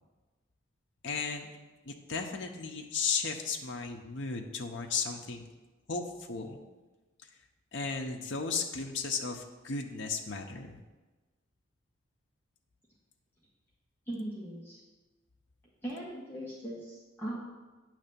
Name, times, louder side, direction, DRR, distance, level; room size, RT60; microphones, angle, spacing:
voice 1, 1.0-1.5 1.9-5.5 5.9-6.6 7.7-10.8, left 5 dB, 60° left, 2 dB, 0.7 m, -35 dB
voice 2, 14.1-14.8 15.8-17.4, right 1 dB, 10° left, -7 dB, 1.1 m, -39 dB
9.1 x 3.3 x 6.8 m, 1.2 s
head